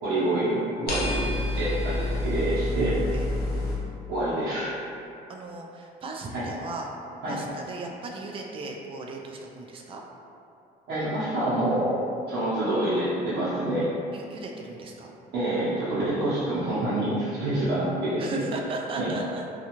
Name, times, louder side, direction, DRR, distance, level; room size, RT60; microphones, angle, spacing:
voice 1, 0.0-1.3 1.5-3.0 4.1-4.7 6.3-6.4 7.2-7.4 10.9-12.0 12.3-13.9 15.3-18.4 19.0-19.1, right 1 dB, 85° right, -12 dB, 0.8 m, -27 dB
sound 1, 0.9-3.7, left 1 dB, 65° left, 0.8 m, -28 dB
voice 2, 5.3-6.9 7.3-10.0 14.1-15.1 18.2-19.4, right 2 dB, 35° right, 0 dB, 0.4 m, -36 dB
2.6 x 2.4 x 2.9 m, 2.6 s
cardioid pair, 110°, 17 cm